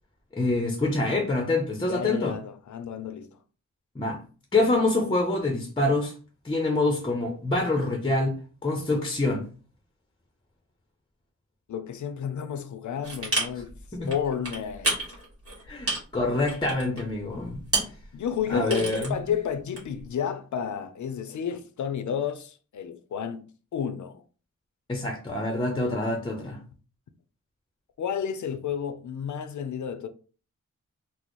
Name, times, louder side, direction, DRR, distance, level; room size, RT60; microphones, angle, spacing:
voice 1, 0.3-2.3 4.0-4.2 4.5-6.1 6.4-8.3 8.6-9.5 13.9-14.1 15.7-17.6 18.5-19.1 24.9-26.6, left 2 dB, 15° left, 0.6 m, -26 dB
voice 2, 1.9-3.4 11.7-13.8 14.1-15.2 18.1-24.2 28.0-30.1, left 8 dB, 70° left, 0.5 m, -31 dB
sound 1, 13.0-13.8 14.1-17.1 17.3-18.0 18.4-19.3 19.8-20.0, right 2 dB, 50° right, 1.8 m, -29 dB
4.1 x 2.0 x 3.0 m
wide cardioid pair, 155°, 30 cm